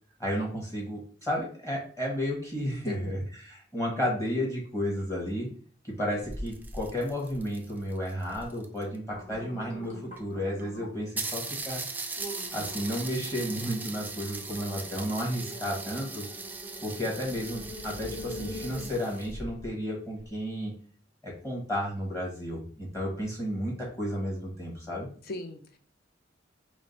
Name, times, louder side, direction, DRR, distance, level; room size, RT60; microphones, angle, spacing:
voice 1, 0.2-5.5 5.8-11.8 12.5-16.2 16.8-20.7 21.2-25.1, equal, 15° left, 1.4 m, -32 dB
voice 2, 2.9-3.2 25.2-25.8, left 2 dB, 55° left, 0.6 m, -38 dB
sound 1, 6.2-6.9 7.2-7.8 8.3-8.5 8.8-11.1 11.6-11.7 12.2-19.7 20.2-20.3, equal, 40° left, 1.6 m, -43 dB
sound 2, 6.2-9.0 9.8-9.9 10.2-10.3 10.6-10.7 11.2-19.3, right 3 dB, 10° right, 0.4 m, -39 dB
4.6 x 2.1 x 4.0 m
head